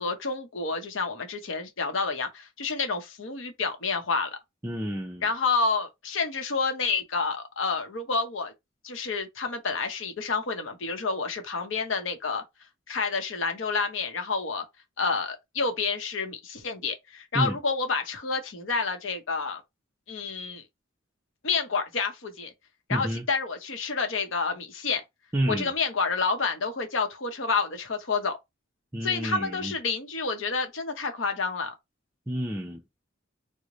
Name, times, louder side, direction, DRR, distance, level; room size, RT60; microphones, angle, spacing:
voice 1, 0.0-4.3 5.2-8.5 8.8-12.4 12.9-14.6 15.0-19.6 20.1-20.6 21.4-22.5 22.9-25.0 25.5-28.4 29.0-31.7, left 4 dB, 70° left, 0.8 m, -29 dB
voice 2, 4.6-5.3 17.3-17.6 22.9-23.3 25.3-25.7 28.9-29.7 32.3-32.8, right 1 dB, 10° right, 0.5 m, -29 dB
3.1 x 2.1 x 3.7 m
head